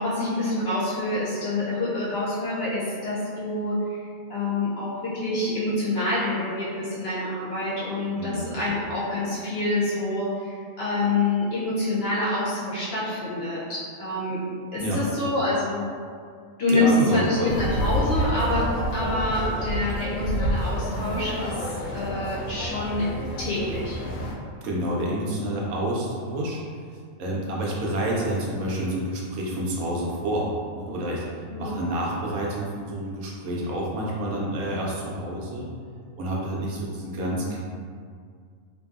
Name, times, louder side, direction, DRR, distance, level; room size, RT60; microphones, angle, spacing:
voice 1, 0.0-4.0 4.3-14.5 14.7-15.8 16.6-24.0 31.5-31.8, left 2 dB, 60° left, -8 dB, 0.7 m, -27 dB
voice 2, 16.7-17.5 24.6-26.6 27.2-31.2 31.6-35.7 36.2-37.6, right 1 dB, 80° right, -4 dB, 1.0 m, -28 dB
sound 1, 17.5-24.3, equal, 90° left, 1.0 m, -28 dB
2.6 x 2.5 x 2.4 m, 2.1 s
omnidirectional pair, 1.4 m